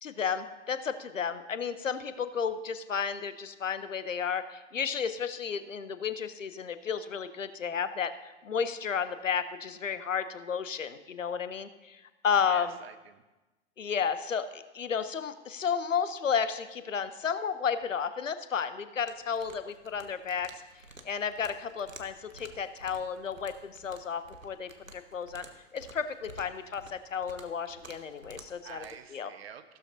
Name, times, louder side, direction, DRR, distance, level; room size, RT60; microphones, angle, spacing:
voice 1, 0.0-8.1 8.4-12.7 13.8-20.5 21.0-25.4 25.7-28.8 29.1-29.3, left 6 dB, 75° left, 13 dB, 0.9 m, -32 dB
voice 2, 12.3-13.2 28.6-29.8, right 9 dB, 55° right, 10 dB, 1.0 m, -47 dB
sound 1, 19.1-28.9, right 2 dB, 90° right, 1.2 m, -52 dB
15.0 x 12.5 x 2.7 m, 1.1 s
figure-of-eight pair, 105°, 38 cm